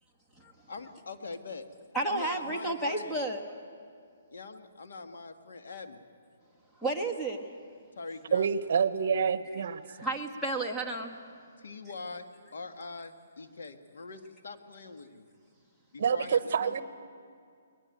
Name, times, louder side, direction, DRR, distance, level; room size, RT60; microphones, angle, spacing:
voice 1, 0.7-1.7 2.1-3.2 4.3-6.0 7.9-8.5 11.6-15.3 15.9-16.8, left 3 dB, 70° left, 7 dB, 1.8 m, -43 dB
voice 2, 1.9-3.4 6.8-7.5 9.9-11.1, right 2 dB, 5° left, 1 dB, 1.5 m, -32 dB
voice 3, 8.3-9.8 16.0-16.8, right 6 dB, 55° right, 14 dB, 1.0 m, -27 dB
22.0 x 19.5 x 9.2 m, 2.3 s
hypercardioid pair, 165°, 0 cm